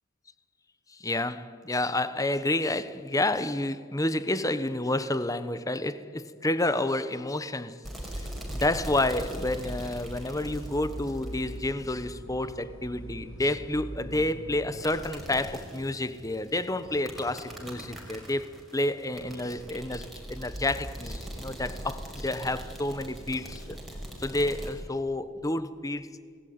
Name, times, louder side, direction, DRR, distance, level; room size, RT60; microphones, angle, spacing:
voice 1, 0.9-8.3 8.5-23.8 24.2-26.1, left 1 dB, 15° left, 1.0 m, -30 dB
sound 1, 7.8-12.0 14.8-24.7, equal, ahead, 5.8 m, -41 dB
sound 2, 9.4-14.8, equal, 90° left, 3.9 m, -42 dB
29.5 x 20.0 x 9.6 m
head